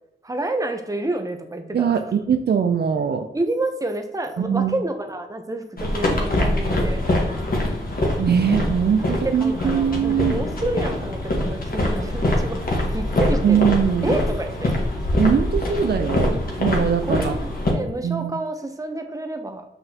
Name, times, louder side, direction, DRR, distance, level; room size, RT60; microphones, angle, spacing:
voice 1, 0.2-2.0 3.3-7.0 9.2-13.6 14.0-14.7 17.1-19.6, right 2 dB, 15° right, 5 dB, 0.8 m, -29 dB
voice 2, 1.7-3.3 4.4-4.7 8.2-10.3 13.4-14.2 15.2-17.4 18.0-18.3, right 7 dB, 55° right, 6 dB, 0.5 m, -21 dB
mans footsteps street, 5.8-17.7, left 1 dB, 50° left, 1.4 m, -24 dB
5.8 x 5.5 x 2.9 m, 0.91 s
cardioid pair, 60°, 20 cm